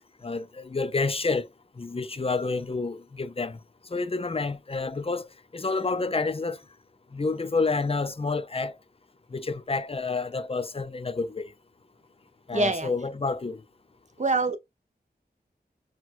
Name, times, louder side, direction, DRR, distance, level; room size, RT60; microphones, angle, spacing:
voice 1, 0.2-1.5 1.8-3.6 3.9-6.6 7.1-8.8 9.3-11.5 12.5-13.6, left 3 dB, 35° left, 0.5 m, -29 dB
voice 2, 12.5-12.9 14.2-14.6, right 2 dB, 45° right, 0.8 m, -24 dB
6.0 x 2.3 x 2.5 m
wide cardioid pair, 55°, 17 cm